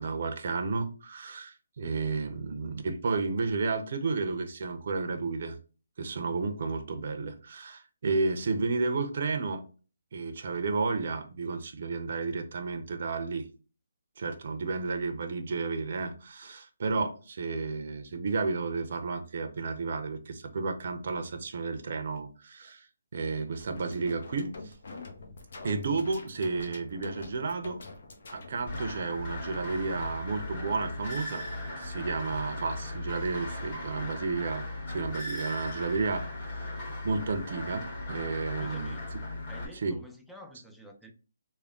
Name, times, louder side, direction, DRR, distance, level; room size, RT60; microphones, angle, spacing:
voice 1, 0.0-5.6 6.0-9.6 10.1-13.5 14.2-22.9 23.1-24.7 25.6-27.8 28.3-31.4 31.8-36.2 36.6-36.7 37.0-39.0 39.7-40.0, right 4 dB, 50° right, 0.6 m, -32 dB
sound 1, 23.6-28.9, left 3 dB, 55° left, 0.8 m, -46 dB
sound 2, 28.7-39.7, left 1 dB, 30° left, 1.8 m, -37 dB
voice 2, 38.6-39.1 39.5-41.1, equal, ahead, 0.4 m, -49 dB
3.4 x 2.2 x 3.6 m
hypercardioid pair, 160°, 0 cm